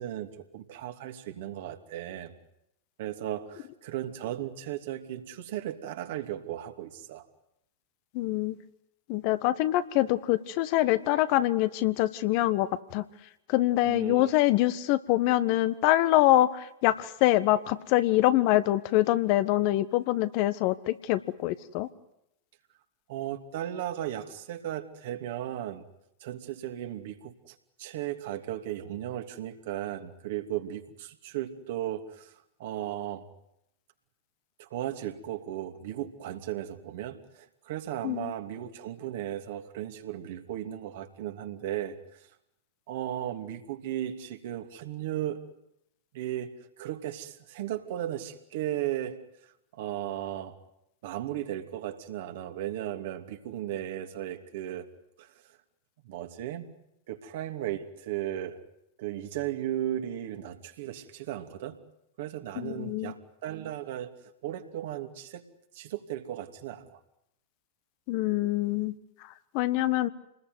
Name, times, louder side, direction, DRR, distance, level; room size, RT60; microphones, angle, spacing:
voice 1, 0.0-2.3 3.0-7.2 13.8-14.3 23.1-25.8 26.2-32.3 32.6-33.2 34.6-42.3 42.9-45.4 46.1-46.5 46.8-49.2 49.7-50.6 51.0-54.9 55.2-55.3 56.0-56.7 57.1-58.6 59.0-61.8 62.2-64.1 64.4-65.4 65.7-67.0, right 12 dB, 60° right, 6 dB, 2.8 m, -36 dB
voice 2, 8.1-8.6 9.1-13.0 13.5-21.9 38.0-38.3 62.6-63.1 68.1-68.9 69.5-70.1, left 15 dB, 50° left, 12 dB, 1.5 m, -25 dB
28.5 x 20.5 x 9.5 m, 0.83 s
figure-of-eight pair, 90°, 0 cm